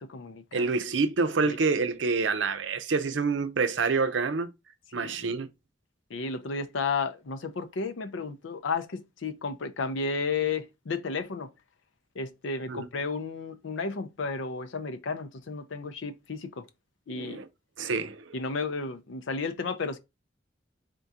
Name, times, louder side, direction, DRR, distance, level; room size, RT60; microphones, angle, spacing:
voice 1, 0.0-0.7 1.4-1.6 4.9-5.4 6.1-11.5 12.2-16.7 17.1-17.4 18.3-20.0, left 4 dB, 75° left, 0.6 m, -33 dB
voice 2, 0.5-4.5 4.9-5.5 12.7-12.9 17.1-17.4 17.8-18.3, right 4 dB, 70° right, 0.6 m, -27 dB
3.7 x 3.6 x 2.7 m
head